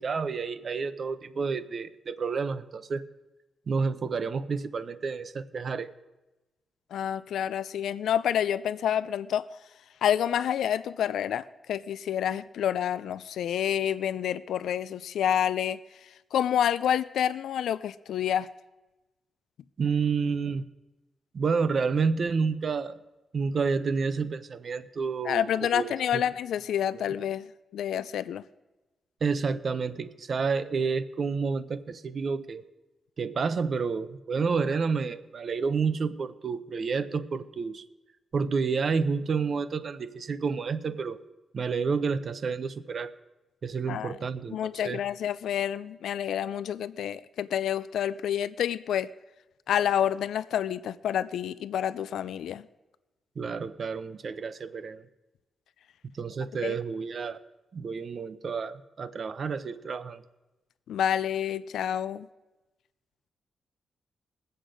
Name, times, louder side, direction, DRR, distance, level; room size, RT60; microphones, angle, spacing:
voice 1, 0.0-3.0 3.7-5.9 19.8-20.6 21.3-23.0 23.3-25.5 25.7-26.2 26.9-27.0 29.2-32.6 33.2-37.8 38.3-41.2 41.5-43.1 43.6-44.6 44.8-45.0 53.4-55.0 56.1-57.4 57.7-60.2, right 5 dB, 45° right, 0.6 m, -29 dB
voice 2, 6.9-9.5 10.0-15.8 16.3-18.5 25.2-27.5 27.7-28.4 43.9-44.2 44.5-49.1 49.7-52.7 56.6-56.8 60.9-62.3, left 9 dB, 90° left, 0.4 m, -28 dB
20.0 x 7.8 x 5.1 m
cardioid pair, 125°, 0 cm